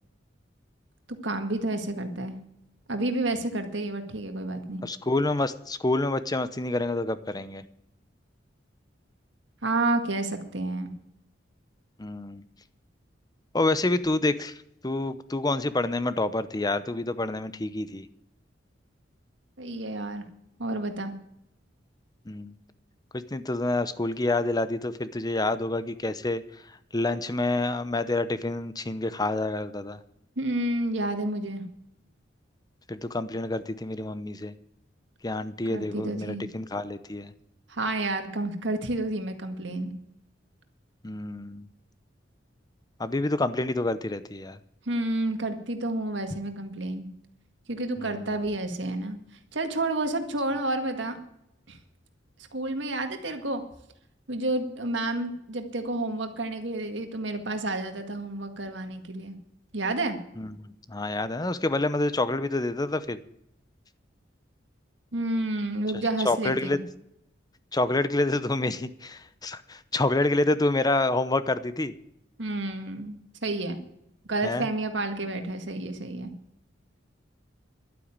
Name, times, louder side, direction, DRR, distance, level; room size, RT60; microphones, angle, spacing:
voice 1, 1.2-2.4 2.9-4.8 9.6-10.9 19.6-20.2 20.6-21.1 30.4-31.6 35.7-36.4 37.7-39.9 44.9-47.1 47.7-49.2 49.5-51.2 51.7-51.8 52.5-53.6 54.3-59.4 59.7-60.2 65.1-66.8 72.4-73.2 73.4-73.8 74.3-76.3, right 2 dB, 70° right, 6 dB, 1.9 m, -30 dB
voice 2, 4.8-7.6 12.0-12.4 13.5-14.6 14.8-18.0 22.3-22.6 23.1-26.4 26.9-30.0 32.9-34.5 35.2-37.3 41.0-41.7 43.0-44.6 48.0-48.3 60.4-60.6 60.9-63.2 66.2-66.8 67.7-71.9 74.4-74.7, left 2 dB, 20° left, 13 dB, 0.7 m, -28 dB
12.0 x 9.1 x 8.8 m, 0.78 s
head